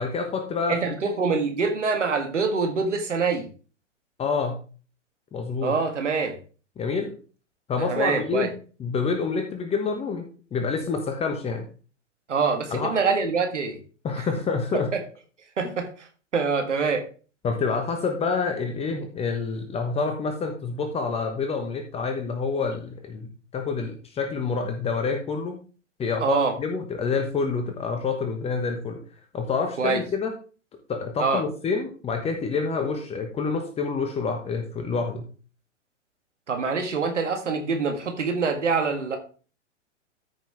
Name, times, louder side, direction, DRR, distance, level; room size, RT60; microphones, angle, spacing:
voice 1, 0.0-0.9 4.2-4.6 5.3-5.8 6.8-7.1 7.7-8.5 8.8-11.6 12.7-12.9 14.0-14.9 15.6-15.7 17.4-25.6 26.0-29.0 29.3-30.3 30.9-35.3, left 4 dB, 15° left, 5 dB, 1.2 m, -27 dB
voice 2, 0.7-3.5 5.6-6.4 7.8-8.5 12.3-13.8 14.2-14.3 14.9-15.0 15.6-16.1 16.3-17.1 26.2-26.5 29.8-30.0 31.2-31.4 36.5-39.2, right 4 dB, 70° right, 5 dB, 1.8 m, -25 dB
13.5 x 5.9 x 3.5 m, 0.38 s
figure-of-eight pair, 110°, 37 cm